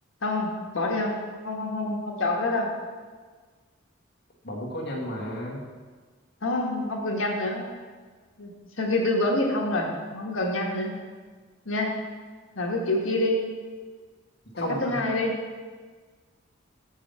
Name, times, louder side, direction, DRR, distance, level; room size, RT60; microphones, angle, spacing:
voice 1, 0.2-1.2 1.4-2.7 6.4-7.7 8.4-10.9 11.6-12.0 12.5-13.4 14.6-15.3, left 2 dB, 90° left, 0 dB, 1.3 m, -27 dB
voice 2, 4.4-5.6 14.5-15.0, equal, 55° left, -3 dB, 1.6 m, -33 dB
6.8 x 5.5 x 5.4 m, 1.5 s
head